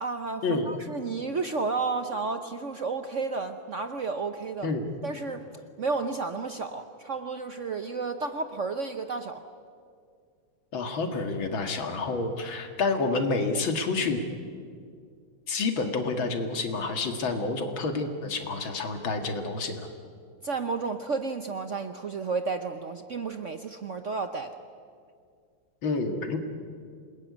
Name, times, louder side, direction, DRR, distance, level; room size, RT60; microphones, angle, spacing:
voice 1, 0.0-4.7 5.0-5.5 5.8-9.4 20.4-24.6, right 4 dB, 50° right, 8 dB, 0.9 m, -32 dB
voice 2, 10.7-14.2 15.5-19.9 25.8-26.4, left 3 dB, 75° left, 6 dB, 2.7 m, -29 dB
27.5 x 20.5 x 9.6 m, 2.2 s
omnidirectional pair, 2.2 m